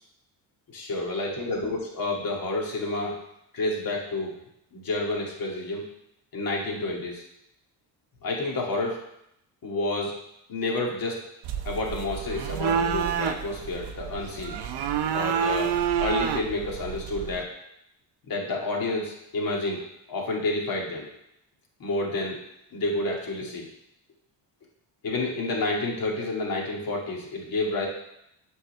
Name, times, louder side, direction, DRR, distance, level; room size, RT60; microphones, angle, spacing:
voice 1, 0.7-3.1 3.5-4.3 4.7-5.8 6.3-7.2 8.2-9.0 9.6-10.1 10.5-11.2 11.7-14.6 15.1-15.7 16.0-17.5 18.3-21.1 21.8-22.4 22.7-23.7 25.0-27.9, left 2 dB, 55° left, -2 dB, 2.3 m, -29 dB
sound 1, 11.4-17.4, right 8 dB, 70° right, 0.8 m, -28 dB
7.7 x 4.1 x 6.7 m, 0.78 s
cardioid pair, 100°, 42 cm